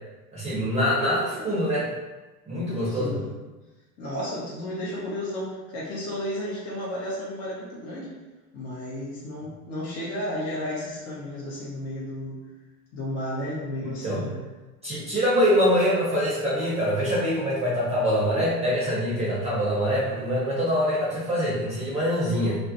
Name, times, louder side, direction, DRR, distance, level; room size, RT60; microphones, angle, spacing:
voice 1, 0.3-1.9 2.5-3.2 13.8-14.2 14.8-22.6, equal, 15° right, -8 dB, 0.7 m, -24 dB
voice 2, 2.8-3.4 4.0-8.1 8.5-12.4 12.9-14.4, left 1 dB, 35° left, -7 dB, 0.7 m, -33 dB
2.4 x 2.1 x 2.7 m, 1.2 s
figure-of-eight pair, 75°, 47 cm